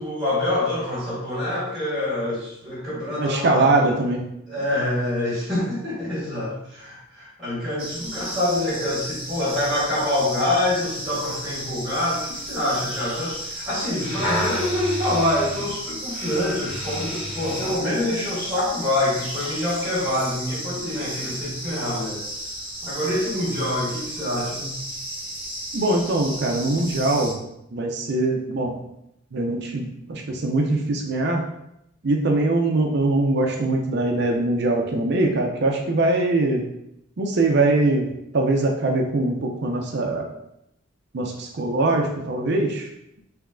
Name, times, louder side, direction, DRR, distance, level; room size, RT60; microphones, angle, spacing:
voice 1, 0.0-3.9 4.5-22.2 22.8-24.8, left 1 dB, ahead, -9 dB, 1.5 m, -26 dB
voice 2, 2.9-4.3 25.7-27.4 27.7-28.8 29.3-31.5 32.0-36.7 37.2-40.3 41.1-42.9, right 2 dB, 50° right, 1 dB, 0.5 m, -22 dB
sound 1, 7.8-27.3, right 1 dB, 25° right, 1.2 m, -34 dB
sound 2, 14.0-17.8 18.5-18.6, left 1 dB, 70° left, 1.5 m, -31 dB
3.5 x 3.1 x 3.6 m, 0.80 s
head